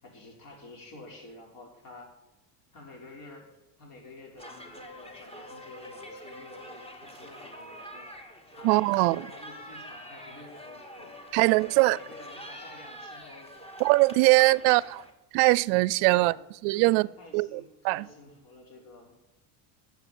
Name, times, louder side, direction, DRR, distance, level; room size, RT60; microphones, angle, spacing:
voice 1, 0.0-2.1 2.7-3.5 3.8-8.1 8.6-11.2 11.9-13.5 16.0-16.3 16.7-19.1, left 2 dB, 50° left, 5.9 m, -49 dB
sound 1, 4.4-15.1, equal, 15° left, 2.1 m, -45 dB
voice 2, 8.6-9.2 11.3-12.0 13.8-15.0 15.3-16.3 16.6-17.1 17.3-18.1, right 23 dB, 80° right, 0.5 m, -22 dB
12.0 x 7.6 x 9.0 m
cardioid pair, 125°, 42 cm